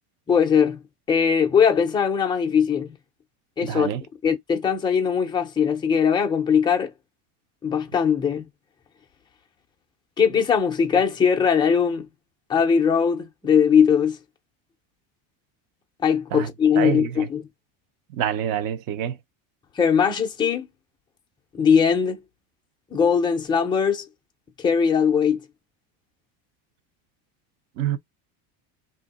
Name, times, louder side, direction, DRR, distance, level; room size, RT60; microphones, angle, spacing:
voice 1, 0.3-2.9 3.6-3.9 4.2-6.9 7.6-8.5 10.2-12.1 12.5-14.2 16.0-17.5 19.8-20.7 21.5-22.2 22.9-24.1 24.6-25.4, left 7 dB, 10° left, 0.4 m, -20 dB
voice 2, 3.6-4.0 16.3-16.5 16.8-17.3 18.2-19.2 27.8-28.0, right 10 dB, 50° right, 0.6 m, -26 dB
2.8 x 2.7 x 4.0 m
cardioid pair, 170°, 45 cm